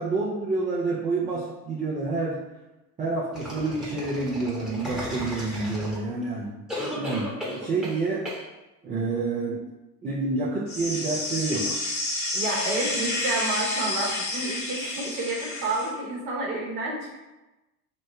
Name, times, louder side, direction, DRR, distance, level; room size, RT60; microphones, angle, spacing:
voice 1, 0.0-2.4 3.0-6.6 7.0-8.3 8.8-9.6 10.0-11.8, right 3 dB, 15° right, -7 dB, 0.4 m, -28 dB
sound 1, 3.3-6.2 6.7-8.0 8.2-8.4, left 1 dB, ahead, 0.9 m, -35 dB
sound 2, 10.7-15.9, left 2 dB, 55° left, 1.4 m, -30 dB
voice 2, 12.3-17.2, right 2 dB, 60° right, -2 dB, 1.0 m, -29 dB
3.0 x 2.1 x 3.3 m, 1.0 s
figure-of-eight pair, 70°, 49 cm